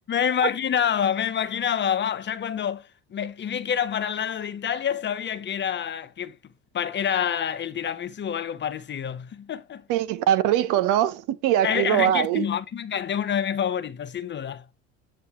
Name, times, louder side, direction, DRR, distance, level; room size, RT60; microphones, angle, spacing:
voice 1, 0.1-6.4 6.7-9.8 11.6-14.6, left 8 dB, 35° left, 0.7 m, -27 dB
voice 2, 9.9-12.5, right 12 dB, 65° right, 0.9 m, -22 dB
8.2 x 3.2 x 4.3 m
supercardioid pair, 85°, 34 cm